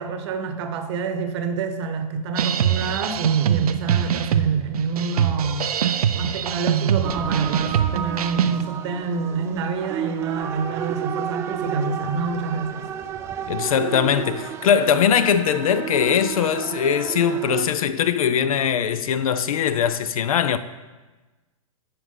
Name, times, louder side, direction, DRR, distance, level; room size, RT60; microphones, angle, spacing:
voice 1, 0.0-5.7 6.1-12.9, right 5 dB, 50° right, 0.9 m, -27 dB
sound 1, 2.4-8.6, right 9 dB, 85° right, 0.5 m, -23 dB
sound 2, 7.0-17.7, right 8 dB, 15° right, 0.3 m, -31 dB
voice 2, 13.5-20.6, left 8 dB, 70° left, 0.5 m, -21 dB
10.5 x 4.8 x 3.8 m
hypercardioid pair, 140°, 18 cm